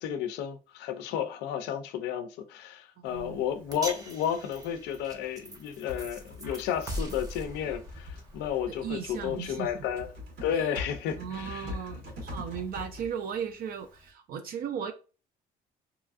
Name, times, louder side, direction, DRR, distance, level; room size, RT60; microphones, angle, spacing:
voice 1, 0.0-10.1 10.4-11.7, left 9 dB, 85° left, 0.4 m, -32 dB
voice 2, 3.0-3.4 8.7-9.8 10.5-10.7 11.2-14.9, right 8 dB, 60° right, 0.4 m, -36 dB
Typing, 3.0-14.1, left 2 dB, 85° right, 1.4 m, -45 dB
sound 1, 3.7-10.1, equal, 20° right, 0.6 m, -42 dB
2.9 x 2.4 x 2.4 m
cardioid pair, 110°, 17 cm